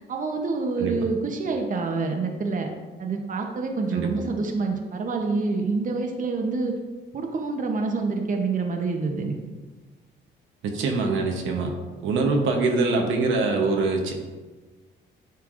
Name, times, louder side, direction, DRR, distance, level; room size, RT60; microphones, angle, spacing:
voice 1, 0.1-2.7 3.0-6.7 7.1-9.4, right 4 dB, 40° right, 3 dB, 0.9 m, -27 dB
voice 2, 10.6-11.7 12.0-14.1, right 3 dB, 80° right, 2 dB, 0.9 m, -24 dB
9.2 x 4.5 x 2.5 m, 1.3 s
cardioid pair, 90°, 20 cm